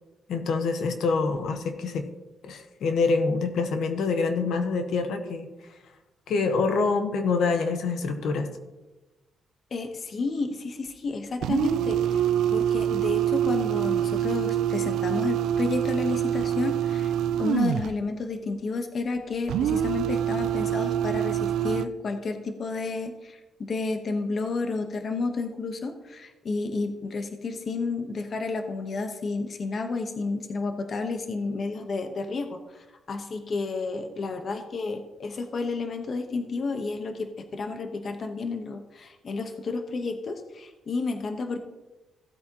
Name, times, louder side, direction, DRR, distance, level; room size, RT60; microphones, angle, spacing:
voice 1, 0.3-2.1 2.4-5.8 6.3-8.5, left 4 dB, 75° left, 6 dB, 1.0 m, -26 dB
voice 2, 9.7-12.2 12.5-17.1 17.4-41.6, left 3 dB, 45° left, 6 dB, 1.0 m, -31 dB
sound 1, 11.4-18.0 19.5-21.9, right 10 dB, 90° right, 0.3 m, -25 dB
16.0 x 8.4 x 2.9 m, 1.1 s
cardioid pair, 130°, 0 cm